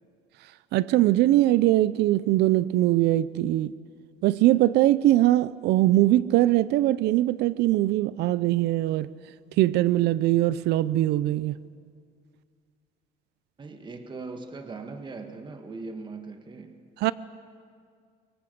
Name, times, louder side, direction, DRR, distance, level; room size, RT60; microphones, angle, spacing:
voice 1, 0.7-3.7 4.2-9.1 9.6-11.6 17.0-17.1, right 15 dB, 80° right, 18 dB, 0.6 m, -21 dB
voice 2, 13.6-16.8, right 3 dB, 25° right, 6 dB, 1.7 m, -39 dB
24.5 x 23.5 x 7.8 m, 2.1 s
cardioid pair, 110°, 17 cm